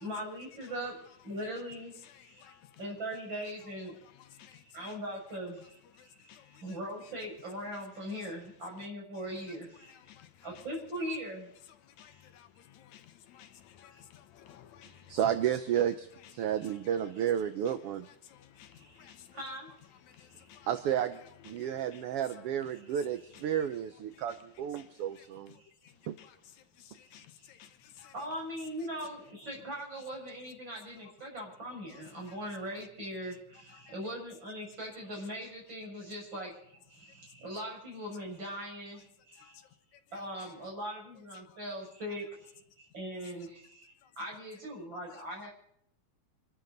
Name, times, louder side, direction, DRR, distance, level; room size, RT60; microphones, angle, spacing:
voice 1, 0.0-1.9 2.2-4.0 4.5-10.0 10.4-11.5 18.7-19.7 20.1-20.6 25.6-25.7 27.1-27.2 27.6-27.7 28.1-39.6 40.1-45.5, equal, 40° right, 7.0 m, -41 dB
voice 2, 12.0-12.5 12.9-13.0 13.3-13.5 13.8-14.9 18.3-18.7 19.0-19.2 20.2-20.7 27.1-27.7 28.0-28.1, left 10 dB, 75° left, 2.2 m, -55 dB
voice 3, 15.1-18.1 20.7-25.5 26.1-26.2, right 10 dB, 70° right, 1.5 m, -32 dB
27.0 x 13.0 x 4.0 m
omnidirectional pair, 3.4 m